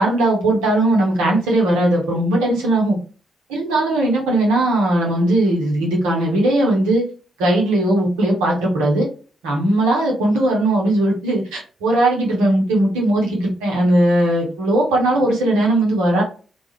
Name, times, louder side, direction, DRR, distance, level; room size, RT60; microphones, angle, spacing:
voice 1, 0.0-3.0 3.5-7.0 7.4-9.1 9.4-16.2, right 1 dB, 90° right, -2 dB, 0.9 m, -18 dB
2.4 x 2.3 x 3.1 m, 0.37 s
hypercardioid pair, 40°, 0 cm